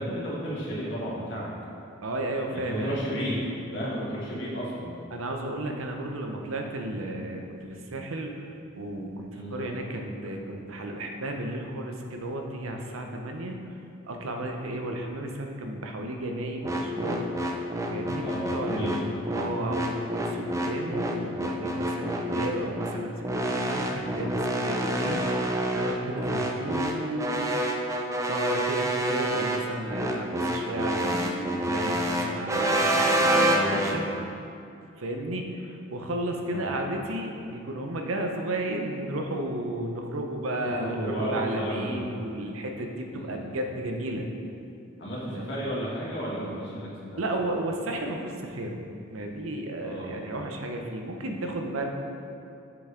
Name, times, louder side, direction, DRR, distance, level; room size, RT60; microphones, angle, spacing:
voice 1, 0.0-1.5 2.5-4.9 9.3-9.7 18.2-19.1 33.5-34.0 36.5-36.7 40.8-42.0 43.1-43.5 45.0-47.3 49.8-50.1, equal, 60° left, -7 dB, 1.7 m, -33 dB
voice 2, 2.0-3.0 5.1-8.3 8.7-13.7 14.1-17.3 17.9-19.0 19.3-23.2 23.4-25.2 25.7-27.5 28.3-34.1 35.0-44.3 45.3-45.5 47.2-48.8 49.1-51.9, right 1 dB, 85° right, 3 dB, 0.8 m, -33 dB
sound 1, 16.6-34.0, right 1 dB, 15° right, 0.4 m, -27 dB
7.0 x 6.7 x 3.8 m, 2.6 s
head